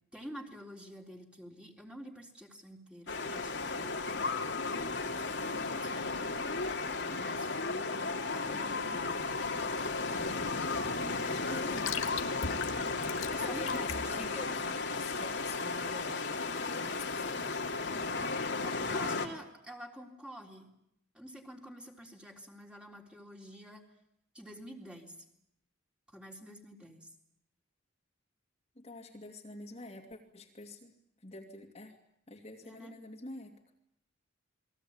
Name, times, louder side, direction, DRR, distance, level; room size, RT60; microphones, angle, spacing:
voice 1, 0.1-4.0 5.1-9.4 12.7-14.4 18.6-20.7 21.1-23.8 24.3-25.2 26.1-27.1 32.6-32.9, equal, 5° right, 1 dB, 3.7 m, -49 dB
sound 1, 3.1-19.3, left 3 dB, 60° left, 2.6 m, -34 dB
sound 2, 9.2-15.9, left 6 dB, 85° left, 1.9 m, -42 dB
voice 2, 11.0-11.9 13.4-16.2 16.6-17.6 28.8-30.9 31.2-32.0 32.3-33.5, left 2 dB, 30° left, 1 dB, 2.7 m, -46 dB
29.0 x 22.0 x 8.8 m, 0.76 s
head